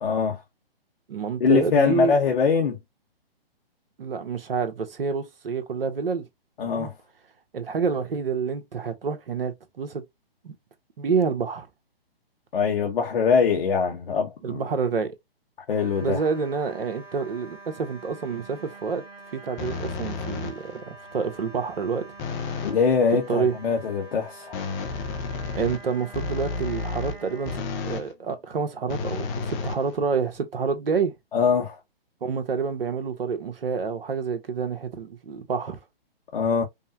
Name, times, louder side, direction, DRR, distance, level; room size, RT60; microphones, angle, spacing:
voice 1, 0.0-0.4 1.4-2.8 6.6-6.9 12.5-14.6 15.7-16.2 22.6-24.6 31.3-31.8 36.3-36.6, left 5 dB, 60° left, 1.3 m, -23 dB
voice 2, 1.1-2.2 4.0-6.3 6.6-6.9 7.5-10.0 10.4-10.5 11.0-11.7 14.4-15.1 16.0-19.0 19.3-22.1 23.3-23.5 25.5-31.1 32.2-35.8, right 5 dB, 65° right, 1.4 m, -28 dB
sound 1, 15.7-27.6, right 3 dB, 15° right, 1.2 m, -46 dB
sound 2, 19.6-20.8 22.2-22.9 24.5-28.1 28.9-30.4, left 4 dB, 15° left, 0.6 m, -32 dB
5.4 x 2.3 x 2.9 m
figure-of-eight pair, 135°, 30 cm